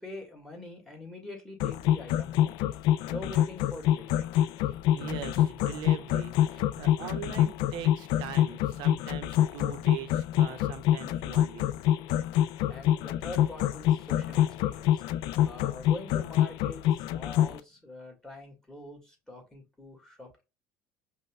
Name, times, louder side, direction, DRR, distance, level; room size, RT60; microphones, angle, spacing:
voice 1, 0.0-2.6 3.1-4.3 12.7-15.0 15.4-20.4, left 2 dB, 5° left, 1.4 m, -44 dB
sound 1, 1.6-17.6, left 12 dB, 70° left, 0.3 m, -25 dB
voice 2, 4.9-11.7, right 11 dB, 65° right, 0.6 m, -41 dB
5.2 x 2.1 x 2.2 m
supercardioid pair, 100°, 8 cm